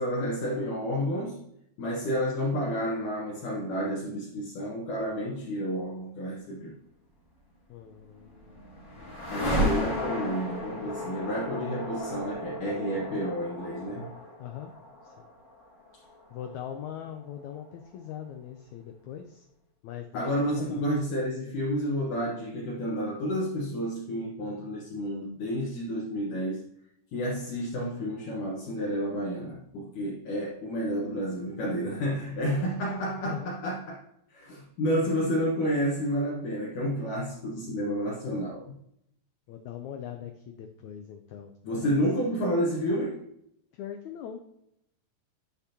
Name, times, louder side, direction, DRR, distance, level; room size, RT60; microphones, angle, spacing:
voice 1, 0.0-1.4 1.8-6.7 9.3-14.1 20.1-26.6 27.1-34.0 34.3-38.7 41.6-43.2, equal, 65° left, 2.7 m, -30 dB
voice 2, 7.7-8.6 9.0-9.7 14.4-14.7 15.0-15.3 16.3-19.5 19.8-20.3 20.6-20.9 33.3-33.5 39.5-42.0 43.7-44.4, left 9 dB, 85° left, 1.7 m, -41 dB
sound 1, 7.9-18.0, equal, 25° left, 2.1 m, -34 dB
11.5 x 6.0 x 2.9 m
omnidirectional pair, 4.1 m